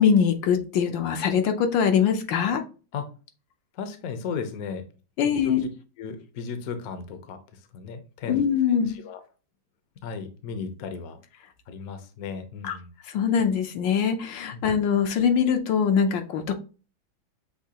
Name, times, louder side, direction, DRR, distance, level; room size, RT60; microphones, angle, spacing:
voice 1, 0.0-2.6 5.2-5.6 8.3-9.0 12.6-12.7 13.1-16.5, left 7 dB, 75° left, 6 dB, 1.3 m, -22 dB
voice 2, 3.7-4.9 5.4-5.5 6.0-7.4 7.7-9.2 10.0-11.2 11.7-12.9 14.5-14.6, left 6 dB, 60° left, 8 dB, 1.0 m, -35 dB
6.6 x 2.7 x 2.8 m, 0.34 s
omnidirectional pair, 2.1 m